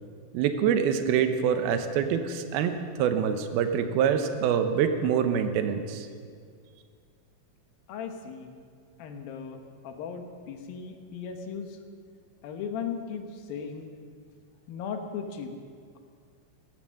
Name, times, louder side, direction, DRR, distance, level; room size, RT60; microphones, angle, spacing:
voice 1, 0.3-6.1, right 8 dB, 90° right, 8 dB, 2.8 m, -25 dB
voice 2, 7.9-8.5 9.0-11.8 12.4-14.0 14.7-15.5, left 6 dB, 75° left, 5 dB, 2.9 m, -37 dB
16.0 x 12.5 x 6.4 m, 2.1 s
omnidirectional pair, 4.3 m